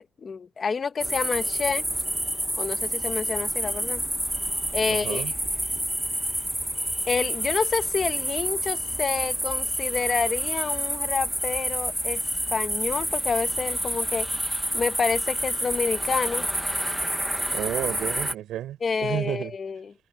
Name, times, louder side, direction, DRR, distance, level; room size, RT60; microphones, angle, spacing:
voice 1, 0.0-1.8 2.6-4.0 4.7-5.2 7.1-12.2 12.5-14.3 14.7-16.5 18.8-19.9, left 5 dB, 30° left, 1.2 m, -28 dB
sound 1, 1.0-18.3, equal, 5° right, 1.2 m, -28 dB
voice 2, 4.9-5.3 17.5-19.5, right 12 dB, 75° right, 5.6 m, -31 dB
cardioid pair, 160°, 0 cm